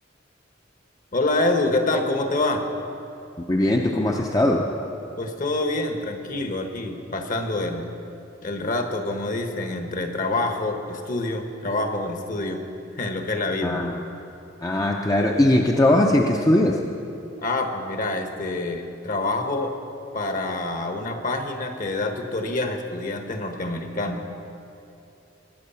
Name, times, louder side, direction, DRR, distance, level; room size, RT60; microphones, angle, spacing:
voice 1, 1.1-2.6 5.2-7.9 8.4-12.6 12.9-13.9 17.4-19.7 20.1-24.3, left 2 dB, 45° left, 5 dB, 1.2 m, -26 dB
voice 2, 3.4-4.7 13.6-14.0 14.6-16.8, left 1 dB, 20° left, 1 dB, 0.6 m, -20 dB
20.5 x 7.8 x 5.7 m, 2.7 s
head